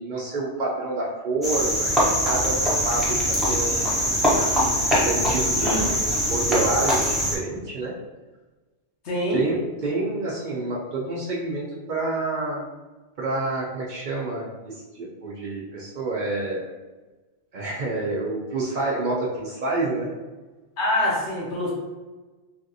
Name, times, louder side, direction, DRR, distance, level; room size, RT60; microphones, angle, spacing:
voice 1, 0.0-3.9 5.0-7.9 9.3-12.6 13.2-16.7 17.5-20.1, right 2 dB, 55° right, -4 dB, 0.6 m, -28 dB
Cricket, 1.4-7.4, equal, ahead, 0.5 m, -22 dB
voice 2, 9.0-9.4 20.8-21.7, left 1 dB, 75° left, -4 dB, 1.1 m, -25 dB
3.3 x 2.4 x 2.6 m, 1.2 s
omnidirectional pair, 1.2 m